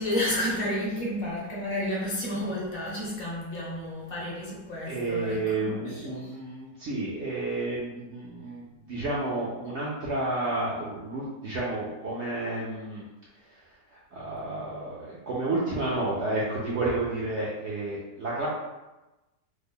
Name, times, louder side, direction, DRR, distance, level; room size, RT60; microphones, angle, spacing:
voice 1, 0.0-6.1, left 1 dB, 55° left, -4 dB, 0.9 m, -31 dB
voice 2, 4.9-13.0 13.4-18.5, right 2 dB, 70° right, -6 dB, 0.6 m, -31 dB
3.2 x 2.0 x 3.5 m, 1.0 s
omnidirectional pair, 1.8 m